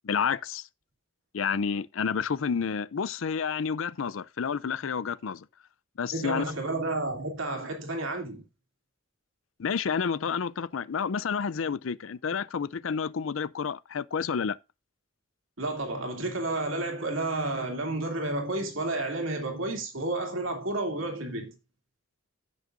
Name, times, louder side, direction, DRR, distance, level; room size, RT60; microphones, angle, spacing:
voice 1, 0.0-0.7 1.3-5.5 6.0-6.4 9.6-14.6, left 6 dB, 70° left, 0.5 m, -30 dB
voice 2, 6.1-8.4 15.6-21.5, right 2 dB, 70° right, 2.8 m, -31 dB
16.0 x 6.4 x 2.6 m
head